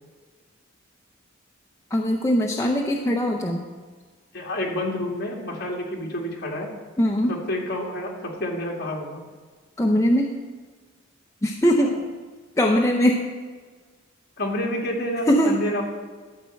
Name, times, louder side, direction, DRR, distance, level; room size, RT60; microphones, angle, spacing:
voice 1, 1.9-3.7 7.0-7.3 9.8-10.3 11.4-11.9 12.6-13.2 15.3-15.5, equal, 15° left, 0 dB, 0.6 m, -21 dB
voice 2, 4.3-6.7 7.2-9.2 11.8-11.9 14.4-15.8, left 1 dB, 50° left, -1 dB, 2.0 m, -29 dB
12.0 x 4.4 x 7.6 m, 1.4 s
head